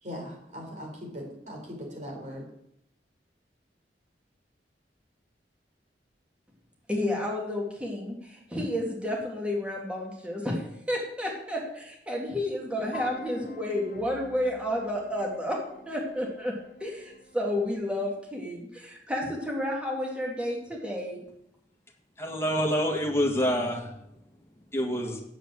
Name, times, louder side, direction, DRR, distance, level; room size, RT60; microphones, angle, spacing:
voice 1, 0.0-2.4, equal, 45° right, 0 dB, 3.8 m, -39 dB
voice 2, 6.9-15.6 15.9-16.5 16.8-21.2, left 1 dB, 5° right, -1 dB, 2.4 m, -31 dB
sound 1, 12.7-17.7, left 3 dB, 50° left, 1.0 m, -45 dB
voice 3, 22.2-25.2, equal, 15° left, 0 dB, 1.8 m, -28 dB
8.2 x 7.8 x 7.7 m, 0.79 s
head